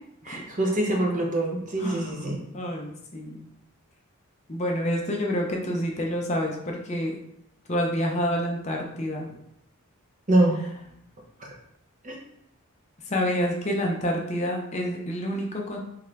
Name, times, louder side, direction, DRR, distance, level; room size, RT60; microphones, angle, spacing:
voice 1, 0.2-2.4 10.3-10.6 12.0-12.2, right 1 dB, 35° right, -1 dB, 0.7 m, -24 dB
voice 2, 1.8-3.5 4.5-7.1 7.7-9.3 13.0-15.8, equal, 30° left, 0 dB, 0.5 m, -28 dB
3.7 x 3.2 x 3.2 m, 0.76 s
head